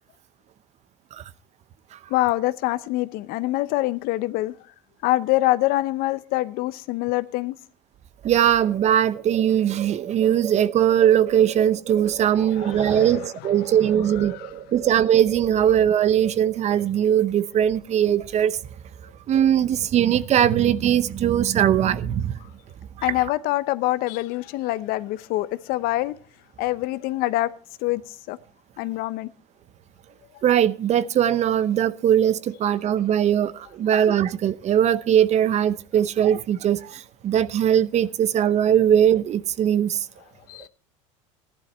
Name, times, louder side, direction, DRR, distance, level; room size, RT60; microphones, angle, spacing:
voice 1, 2.1-4.5 5.0-7.6 12.6-13.1 14.3-14.5 23.0-26.2 26.6-27.5 27.8-28.0 28.3-28.4 28.8-29.3 40.5-40.7, left 17 dB, 60° left, 0.8 m, -25 dB
voice 2, 8.2-18.6 19.3-22.3 30.4-40.1, right 10 dB, 40° right, 0.8 m, -20 dB
14.5 x 11.0 x 4.3 m
hypercardioid pair, 90°, 17 cm